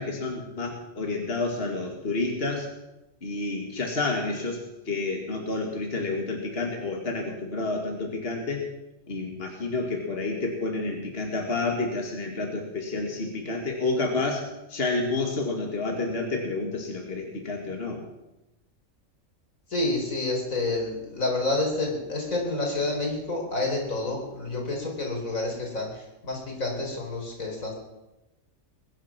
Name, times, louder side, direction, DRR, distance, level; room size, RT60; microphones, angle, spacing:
voice 1, 0.0-2.7 3.2-8.6 9.1-18.0, left 3 dB, 45° left, 1 dB, 2.4 m, -29 dB
voice 2, 19.7-27.7, left 2 dB, 90° left, 0 dB, 4.7 m, -29 dB
21.0 x 10.5 x 6.0 m, 0.97 s
omnidirectional pair, 1.4 m